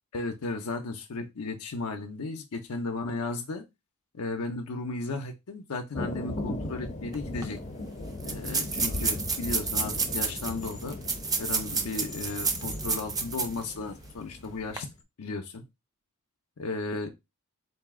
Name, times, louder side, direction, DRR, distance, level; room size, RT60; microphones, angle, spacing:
voice 1, 0.1-3.6 4.1-7.6 8.2-11.0 11.4-14.9 15.2-15.6 16.6-17.1, left 3 dB, 80° left, 0.6 m, -35 dB
Thunder, 5.9-14.9, left 2 dB, 30° left, 0.6 m, -38 dB
sound 1, 7.1-7.2 7.4-7.5 8.2-13.6 14.0-14.1 14.6-14.8, right 4 dB, 15° right, 0.5 m, -30 dB
4.0 x 2.6 x 3.6 m
head